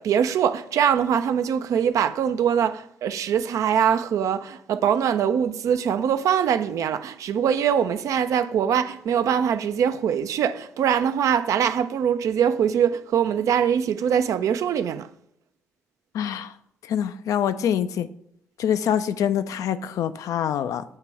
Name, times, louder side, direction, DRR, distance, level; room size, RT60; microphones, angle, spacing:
voice 1, 0.0-15.1, right 8 dB, 65° right, 0.4 m, -23 dB
voice 2, 16.1-16.5 16.8-18.1 18.6-20.8, left 9 dB, 65° left, 0.4 m, -25 dB
7.6 x 2.9 x 4.5 m
hypercardioid pair, 40°, 6 cm